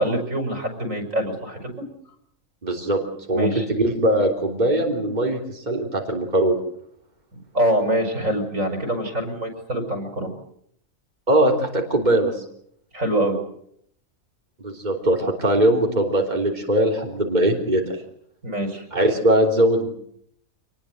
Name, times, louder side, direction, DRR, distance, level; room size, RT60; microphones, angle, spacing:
voice 1, 0.0-1.7 3.3-3.6 7.3-10.3 12.9-13.4 18.4-18.8, right 1 dB, 75° right, 5 dB, 5.9 m, -24 dB
voice 2, 2.6-3.0 3.3-6.6 11.3-12.4 14.6-18.0 18.9-19.9, right 1 dB, 30° right, 1 dB, 3.7 m, -21 dB
28.0 x 20.0 x 7.9 m, 0.70 s
omnidirectional pair, 1.4 m